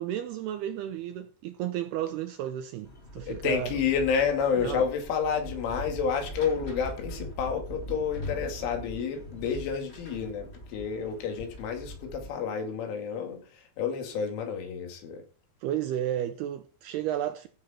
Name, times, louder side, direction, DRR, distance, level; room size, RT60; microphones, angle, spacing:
voice 1, 0.0-3.8 4.6-4.8 15.6-17.5, right 11 dB, 80° right, 2.3 m, -32 dB
sound 1, 2.8-12.4, equal, 65° left, 0.6 m, -42 dB
voice 2, 3.2-13.4 13.8-15.2, left 6 dB, 85° left, 4.9 m, -30 dB
16.0 x 6.5 x 4.3 m
omnidirectional pair, 5.4 m